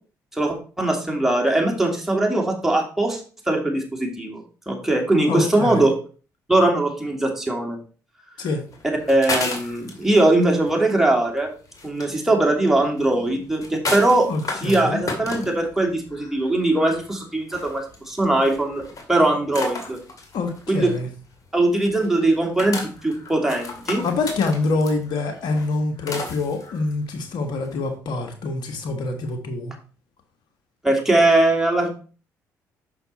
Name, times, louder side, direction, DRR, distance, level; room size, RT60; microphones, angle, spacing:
voice 1, 0.3-3.2 3.5-5.9 6.5-7.8 9.1-11.5 11.8-14.3 14.6-18.8 19.1-20.0 20.7-20.9 21.5-24.0 30.8-31.9, right 2 dB, 5° right, 0 dB, 2.8 m, -20 dB
voice 2, 5.3-5.9 8.4-8.6 14.3-15.0 20.3-21.1 24.0-29.7, left 3 dB, 65° left, 4 dB, 1.4 m, -25 dB
sound 1, 8.7-27.9, left 3 dB, 50° left, 2.2 m, -34 dB
6.7 x 5.8 x 4.1 m, 0.38 s
supercardioid pair, 60°, 8 cm